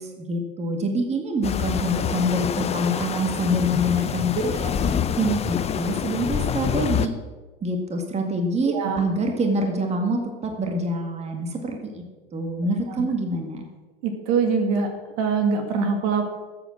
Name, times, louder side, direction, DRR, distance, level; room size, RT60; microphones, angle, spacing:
voice 1, 0.0-7.1 7.6-12.0 12.3-13.6, equal, 20° right, 3 dB, 1.9 m, -26 dB
sound 1, 1.4-7.1, left 8 dB, 20° left, 0.7 m, -26 dB
voice 2, 8.7-9.0 14.0-14.9 15.2-16.3, right 5 dB, 50° right, 5 dB, 2.2 m, -23 dB
13.5 x 8.0 x 6.2 m, 1.3 s
hypercardioid pair, 100°, 30 cm